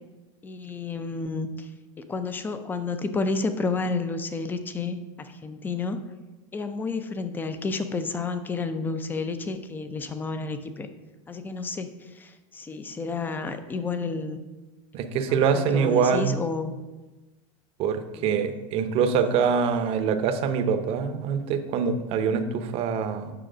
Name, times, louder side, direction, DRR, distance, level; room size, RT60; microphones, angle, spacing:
voice 1, 0.4-1.7 2.0-6.0 6.5-10.9 11.3-14.4 15.3-16.7 18.1-18.4 20.0-20.1, left 4 dB, 10° left, 10 dB, 0.5 m, -31 dB
voice 2, 14.9-16.4 17.8-23.3, right 6 dB, 40° right, 8 dB, 0.7 m, -24 dB
7.8 x 5.8 x 4.9 m, 1.1 s
supercardioid pair, 150°, 16 cm